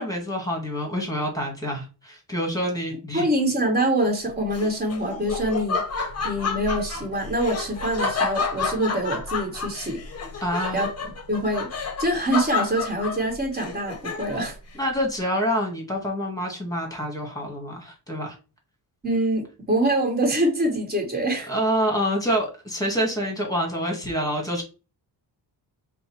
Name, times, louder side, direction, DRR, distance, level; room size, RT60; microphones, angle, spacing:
voice 1, 0.0-3.2 10.4-10.8 14.7-18.4 21.5-24.6, equal, 10° left, 1 dB, 1.7 m, -27 dB
voice 2, 3.1-5.8 6.2-10.0 10.7-10.9 11.3-11.7 12.0-14.6 19.0-21.5, right 1 dB, 25° right, 0 dB, 1.9 m, -25 dB
Laughter, 4.5-14.5, left 4 dB, 35° left, 0.8 m, -30 dB
5.3 x 2.2 x 4.5 m, 0.32 s
wide cardioid pair, 135°, 42 cm